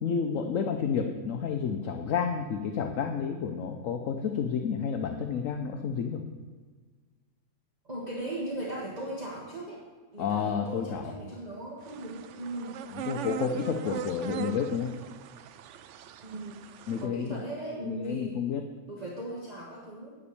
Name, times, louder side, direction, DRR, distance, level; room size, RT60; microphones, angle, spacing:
voice 1, 0.0-6.2 10.2-11.1 12.9-14.9 16.9-17.4 17.8-18.7, left 6 dB, 60° left, 5 dB, 1.0 m, -30 dB
voice 2, 7.8-9.8 10.1-12.8 13.5-13.7 16.2-16.6 17.0-18.4 18.9-20.2, right 1 dB, 25° right, -5 dB, 1.7 m, -38 dB
sound 1, 11.8-17.1, right 10 dB, 70° right, 0.7 m, -40 dB
9.9 x 5.3 x 8.4 m, 1.5 s
omnidirectional pair, 1.7 m